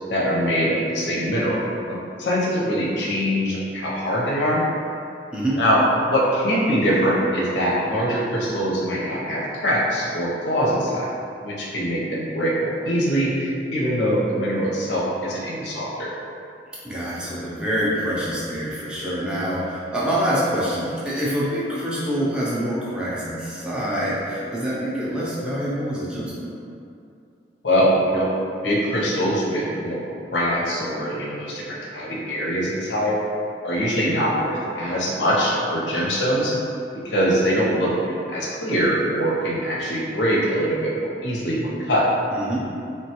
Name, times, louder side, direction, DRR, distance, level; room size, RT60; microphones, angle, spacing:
voice 1, 0.1-4.6 5.6-11.1 11.4-16.1 27.6-28.3 28.6-30.0 30.3-33.2 33.6-36.5 37.0-42.1, equal, 85° left, -4 dB, 0.6 m, -23 dB
voice 2, 16.8-26.5 42.3-42.7, equal, 5° right, -8 dB, 0.4 m, -26 dB
3.3 x 2.2 x 2.8 m, 2.5 s
head